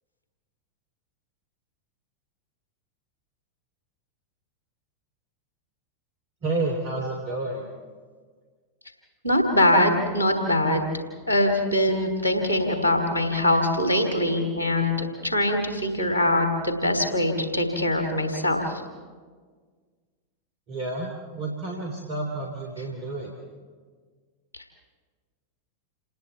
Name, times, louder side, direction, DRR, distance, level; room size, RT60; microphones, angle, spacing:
voice 1, 6.4-7.7 20.7-23.3, right 2 dB, 45° right, 1 dB, 3.3 m, -30 dB
voice 2, 9.2-10.9 11.3-18.6 24.5-24.6, left 1 dB, 85° right, 2 dB, 2.6 m, -23 dB
28.5 x 19.5 x 4.6 m, 1.5 s
figure-of-eight pair, 90°, 0 cm